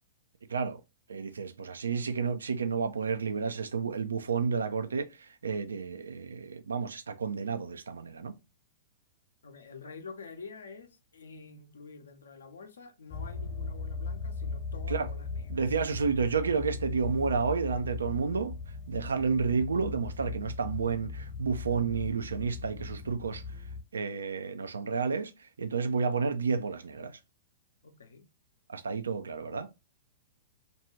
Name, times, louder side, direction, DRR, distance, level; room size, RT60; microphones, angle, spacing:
voice 1, 0.5-0.8 1.1-8.3 14.9-15.1 15.5-18.5 18.9-23.6 23.9-27.2 28.7-29.7, right 5 dB, 80° right, 0.4 m, -31 dB
voice 2, 9.4-15.5 27.8-28.2, left 4 dB, 75° left, 0.6 m, -48 dB
sound 1, 13.1-23.8, left 4 dB, 40° left, 0.8 m, -38 dB
2.6 x 2.3 x 2.9 m
hypercardioid pair, 110°, 0 cm